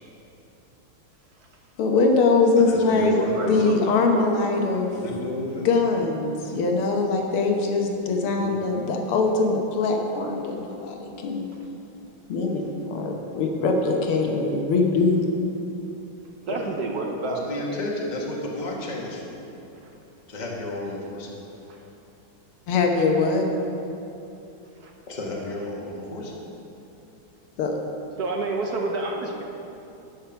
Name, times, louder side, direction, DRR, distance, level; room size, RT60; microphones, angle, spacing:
voice 1, 1.8-3.2 3.4-4.9 5.6-11.5 12.3-12.6 12.9-15.2 22.7-23.4 27.6-27.8, left 3 dB, 85° left, 2 dB, 1.9 m, -22 dB
voice 2, 2.5-3.7 4.9-5.7 8.0-8.5 16.4-16.7 17.2-19.4 20.3-21.3 25.1-26.5, left 1 dB, 25° left, -2 dB, 1.3 m, -32 dB
voice 3, 3.1-3.8 4.1-4.4 16.5-17.4 21.7-21.8 24.8-24.9 28.2-29.4, right 3 dB, 55° right, 1 dB, 1.2 m, -29 dB
11.5 x 6.6 x 5.9 m, 2.9 s
omnidirectional pair, 2.4 m